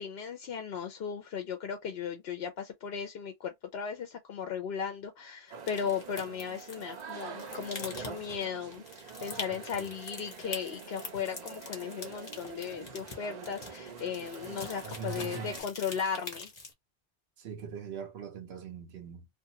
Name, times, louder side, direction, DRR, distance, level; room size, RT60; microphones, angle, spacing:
voice 1, 0.0-16.5, left 7 dB, 70° left, 0.8 m, -36 dB
sound 1, 5.5-15.6, right 6 dB, 50° right, 0.6 m, -45 dB
sound 2, 5.6-16.7, left 3 dB, 45° left, 0.9 m, -45 dB
voice 2, 9.5-9.9 14.8-15.5 17.4-19.3, right 6 dB, 80° right, 1.0 m, -42 dB
2.5 x 2.4 x 2.8 m
omnidirectional pair, 1.1 m